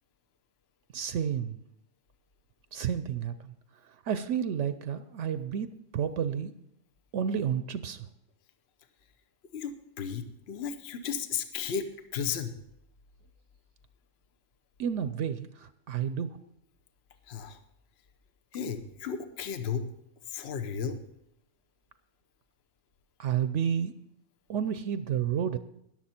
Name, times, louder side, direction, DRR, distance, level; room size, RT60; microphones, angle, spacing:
voice 1, 0.9-1.6 2.7-3.5 4.1-6.5 7.1-8.1 14.8-16.4 23.2-23.9 24.5-25.6, right 8 dB, 70° right, 12 dB, 0.9 m, -31 dB
voice 2, 9.5-12.6 17.3-17.6 18.5-19.9 20.3-21.0, left 7 dB, 55° left, 8 dB, 1.1 m, -34 dB
13.5 x 10.5 x 4.3 m, 0.79 s
omnidirectional pair, 1.3 m